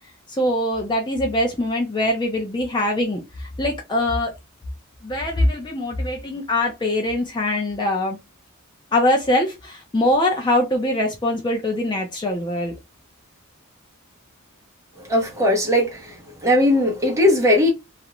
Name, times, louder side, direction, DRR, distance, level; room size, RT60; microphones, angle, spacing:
voice 1, 0.3-4.3 5.0-8.2 8.9-12.7, left 1 dB, 20° left, 0.4 m, -22 dB
voice 2, 15.0-16.1 16.4-17.7, left 1 dB, 15° right, 0.7 m, -18 dB
2.4 x 2.1 x 2.8 m
head